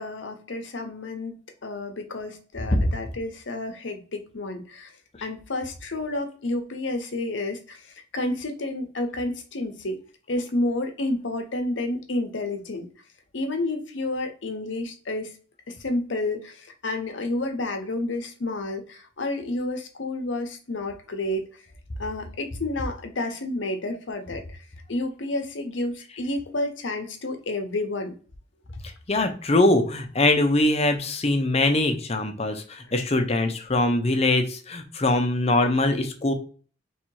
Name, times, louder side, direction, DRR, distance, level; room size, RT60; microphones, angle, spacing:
voice 1, 0.0-4.9 5.2-7.8 8.1-10.0 10.3-12.9 13.3-15.4 15.7-21.5 22.0-24.6 24.9-28.2, left 2 dB, 75° left, 6 dB, 0.9 m, -30 dB
voice 2, 29.1-36.3, left 2 dB, 35° left, 6 dB, 0.7 m, -22 dB
3.2 x 2.8 x 4.6 m, 0.40 s
head